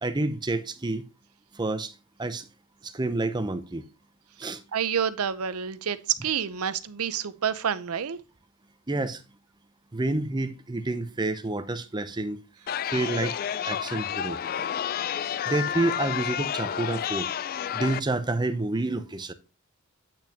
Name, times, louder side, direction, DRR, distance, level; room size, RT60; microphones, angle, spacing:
voice 1, 0.0-1.0 1.6-1.9 2.2-2.5 2.8-3.8 4.4-4.6 8.9-9.2 9.9-12.4 12.9-13.4 13.7-14.4 15.5-17.3 17.7-19.3, right 2 dB, 20° right, 0.6 m, -28 dB
voice 2, 4.7-8.2, right 8 dB, 75° right, 0.7 m, -28 dB
Chatter, 12.7-18.0, left 9 dB, 40° left, 0.3 m, -30 dB
8.7 x 6.1 x 2.8 m
head